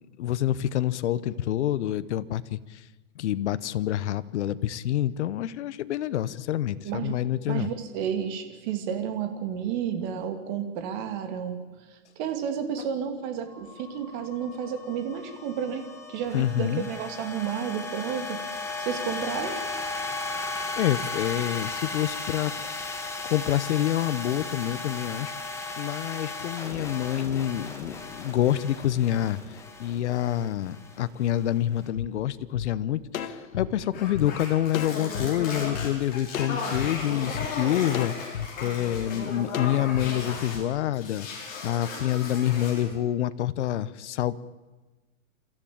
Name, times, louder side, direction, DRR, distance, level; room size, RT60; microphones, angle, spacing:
voice 1, 0.2-2.8 3.2-7.7 12.8-12.9 16.3-16.9 20.8-23.0 23.3-44.3, left 12 dB, 55° left, 15 dB, 1.0 m, -27 dB
voice 2, 6.8-7.2 7.5-11.6 11.9-19.6, right 8 dB, 35° right, 6 dB, 2.7 m, -31 dB
sound 1, 13.5-31.8, left 3 dB, 5° left, 1.7 m, -36 dB
sound 2, 31.9-32.1 32.5-32.7 33.1-34.3 34.7-35.3 35.7-35.9 36.3-36.9 37.3-37.5 37.9-38.5 38.9-39.1 39.5-40.1 40.5-40.6, left 8 dB, 85° left, 1.8 m, -33 dB
sound 3, 33.9-40.7 40.9-42.9, left 4 dB, 20° left, 4.8 m, -36 dB
29.5 x 13.5 x 8.8 m, 1.2 s
hypercardioid pair, 160°, 41 cm